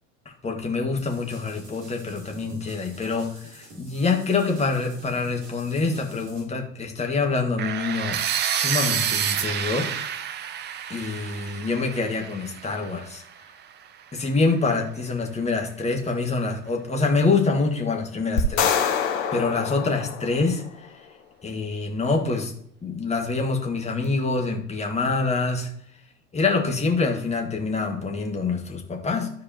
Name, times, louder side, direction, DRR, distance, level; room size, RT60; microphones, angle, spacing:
voice 1, 0.4-8.2 8.5-9.9 10.9-13.2 14.1-18.8 19.3-20.9 21.4-22.5 22.8-25.7 26.3-29.3, left 3 dB, 15° left, 1 dB, 1.7 m, -25 dB
sound 1, 1.0-6.4, right 1 dB, 45° right, 2.6 m, -47 dB
sound 2, 7.6-13.5, right 9 dB, 25° right, 0.6 m, -29 dB
sound 3, 18.4-20.8, left 7 dB, 55° left, 1.3 m, -25 dB
12.5 x 4.7 x 2.9 m, 0.65 s
figure-of-eight pair, 75°, 40 cm